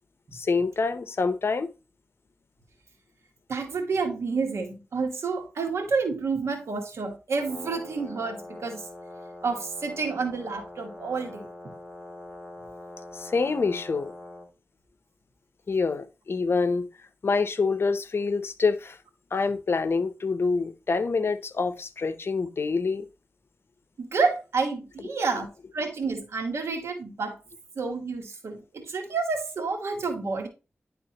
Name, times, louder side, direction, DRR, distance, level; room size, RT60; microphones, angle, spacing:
voice 1, 0.3-1.7 13.1-14.1 15.7-16.9 17.2-19.0 19.3-23.1, left 4 dB, 60° left, 0.7 m, -26 dB
voice 2, 3.5-8.8 9.4-11.5 24.0-25.5 25.7-27.4 27.7-30.5, right 4 dB, 80° right, 1.4 m, -29 dB
Brass instrument, 7.3-14.5, left 1 dB, 5° left, 2.3 m, -43 dB
10.5 x 3.6 x 2.9 m
cardioid pair, 50°, 5 cm